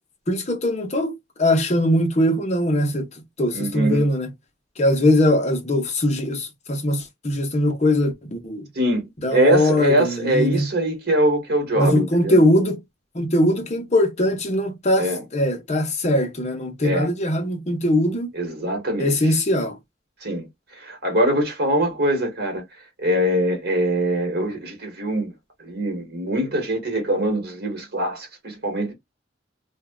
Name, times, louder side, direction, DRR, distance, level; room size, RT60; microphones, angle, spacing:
voice 1, 0.3-1.1 1.4-3.1 3.4-4.3 4.8-8.6 9.2-10.6 11.8-12.8 13.1-18.3 19.0-19.8, left 1 dB, 40° left, 0.9 m, -21 dB
voice 2, 3.5-4.1 8.7-9.0 9.3-12.4 15.0-15.2 16.8-17.1 18.3-19.3 20.2-20.5 20.7-22.6 23.0-25.3 25.6-28.9, right 1 dB, 60° right, 1.3 m, -23 dB
2.7 x 2.3 x 3.5 m
head